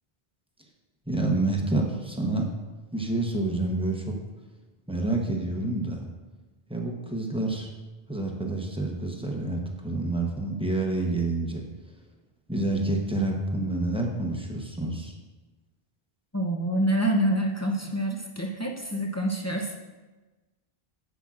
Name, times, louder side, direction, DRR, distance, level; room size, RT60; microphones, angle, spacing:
voice 1, 1.1-2.5 2.9-4.1 4.9-6.1 6.7-7.7 8.1-11.6 12.5-15.1, right 2 dB, 5° right, 0 dB, 0.8 m, -28 dB
voice 2, 16.3-19.8, right 1 dB, 20° left, 0 dB, 0.5 m, -27 dB
9.8 x 7.4 x 2.5 m, 1.2 s
omnidirectional pair, 1.0 m